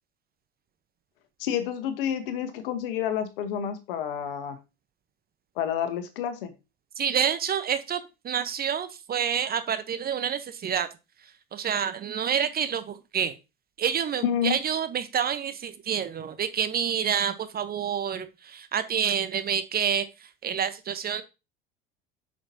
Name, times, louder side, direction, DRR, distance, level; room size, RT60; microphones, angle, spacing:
voice 1, 1.4-4.6 5.6-6.5 14.2-14.6, left 9 dB, 65° left, 9 dB, 1.4 m, -29 dB
voice 2, 7.0-10.9 11.5-13.3 13.8-20.1 20.4-21.2, right 8 dB, 30° right, 11 dB, 1.0 m, -28 dB
8.8 x 6.1 x 2.8 m, 0.27 s
figure-of-eight pair, 70°, 29 cm